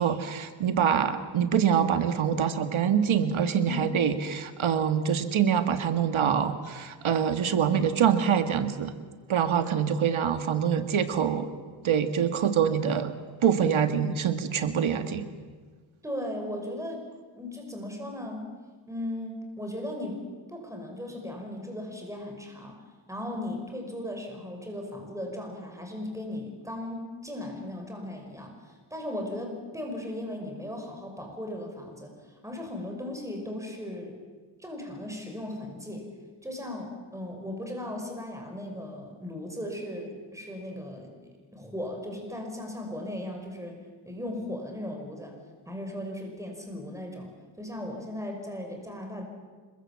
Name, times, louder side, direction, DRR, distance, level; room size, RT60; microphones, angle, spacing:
voice 1, 0.0-8.9 9.3-11.5 11.8-13.1 13.4-15.3, right 8 dB, 80° right, 8 dB, 1.8 m, -25 dB
voice 2, 16.0-17.0 17.4-18.5 18.9-20.2 20.5-22.8 23.1-32.1 32.4-34.2 34.6-36.1 36.4-41.1 41.5-43.8 44.0-45.3 45.7-47.3 47.6-49.2, left 1 dB, 5° right, 2 dB, 5.8 m, -37 dB
26.5 x 23.0 x 7.6 m, 1.5 s
wide cardioid pair, 100°, 47 cm